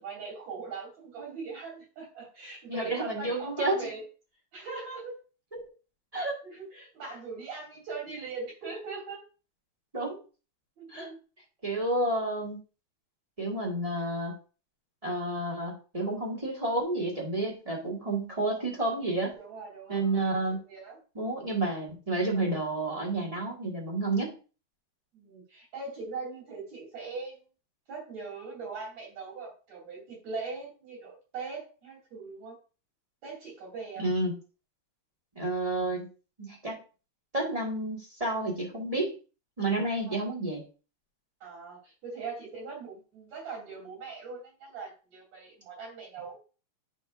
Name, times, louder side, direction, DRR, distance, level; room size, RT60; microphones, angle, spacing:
voice 1, 0.0-4.0 4.5-5.1 6.2-9.2 10.8-11.2 19.4-20.2 20.5-21.0 25.1-27.4 27.9-32.5 33.2-34.1 40.0-40.2 41.4-46.4, right 4 dB, 65° right, -3 dB, 4.4 m, -40 dB
voice 2, 2.7-3.8 5.5-5.7 6.1-6.4 9.9-10.2 10.9-11.1 11.6-12.6 13.4-14.3 15.0-19.3 19.9-20.6 21.1-24.4 34.0-34.3 35.3-36.1 36.4-36.8 37.3-39.1 39.6-40.6, right 2 dB, 15° right, -3 dB, 1.3 m, -30 dB
10.0 x 4.4 x 2.5 m, 0.35 s
omnidirectional pair, 3.4 m